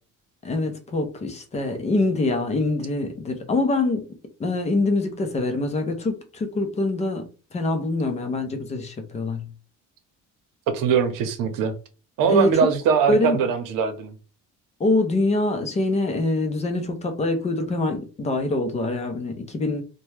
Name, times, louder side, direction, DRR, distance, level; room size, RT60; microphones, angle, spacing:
voice 1, 0.4-4.1 4.4-9.5 12.3-12.7 13.1-13.4 14.8-19.8, left 2 dB, 20° left, 0.5 m, -24 dB
voice 2, 10.7-11.7 12.2-14.1, right 6 dB, 85° right, 0.8 m, -21 dB
2.7 x 2.2 x 3.2 m
cardioid pair, 170°, 32 cm